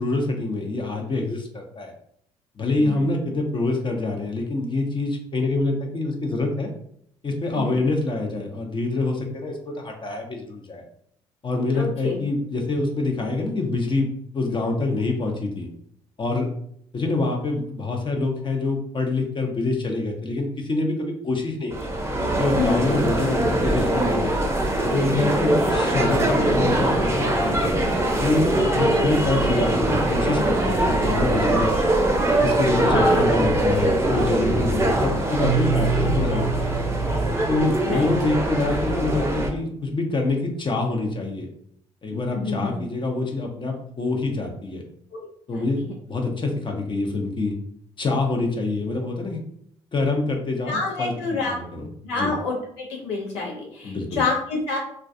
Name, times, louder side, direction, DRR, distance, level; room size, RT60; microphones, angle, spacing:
voice 1, 0.0-1.9 2.6-6.7 7.2-10.8 11.4-15.7 16.2-16.5 16.9-21.9 22.4-24.3 24.9-27.7 28.2-31.8 32.4-36.7 37.5-41.5 42.0-44.8 45.5-47.5 48.0-49.4 49.9-51.9 52.2-52.3 53.8-54.2, left 2 dB, 35° left, 1 dB, 0.6 m, -26 dB
voice 2, 2.6-3.1 7.5-7.8 11.7-12.2 22.5-23.0 25.2-25.5 32.9-33.2 37.8-38.1 42.3-42.8 45.1-45.3 45.5-45.9 50.7-51.5 52.0-54.8, left 3 dB, 90° left, -2 dB, 0.7 m, -28 dB
sound 1, 21.7-39.5, right 1 dB, 20° right, 0.6 m, -22 dB
Keyboard (musical), 35.4-38.3, right 8 dB, 70° right, 0.5 m, -28 dB
2.2 x 2.2 x 2.5 m, 0.68 s
hypercardioid pair, 55°, 14 cm